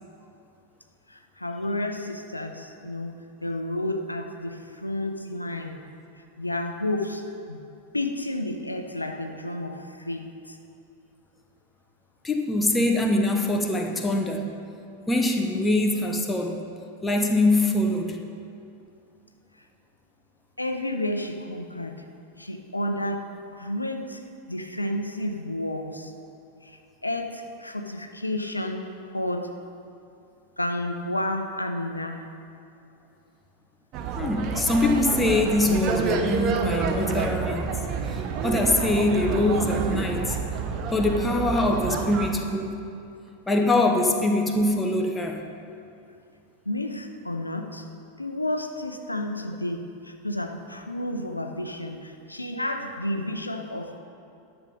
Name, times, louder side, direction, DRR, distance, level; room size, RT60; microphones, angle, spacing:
voice 1, 1.1-5.8 6.4-7.6 7.9-10.6 20.6-22.0 22.4-24.2 24.5-26.1 26.6-29.6 30.6-32.3 46.7-47.8 48.2-54.0, left 1 dB, 85° left, 5 dB, 0.6 m, -31 dB
voice 2, 12.2-14.5 15.1-16.6 17.0-18.2 34.2-37.8 38.4-40.4 40.9-42.8 43.5-45.4, left 2 dB, 10° left, 3 dB, 1.0 m, -23 dB
sound 1, 33.9-42.3, right 5 dB, 40° right, 0.9 m, -28 dB
11.0 x 7.1 x 5.2 m, 2.6 s
figure-of-eight pair, 90°, 0 cm